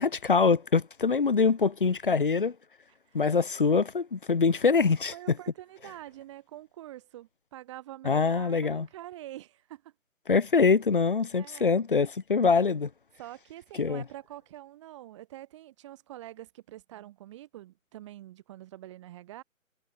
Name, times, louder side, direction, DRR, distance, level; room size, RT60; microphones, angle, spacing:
voice 1, 0.0-2.5 3.1-5.1 8.0-8.9 10.3-12.9 13.8-14.0, left 5 dB, 40° left, 0.8 m, -24 dB
voice 2, 5.1-9.9 11.4-11.7 13.2-19.4, right 14 dB, 20° right, 5.5 m, -46 dB
figure-of-eight pair, 150°, 42 cm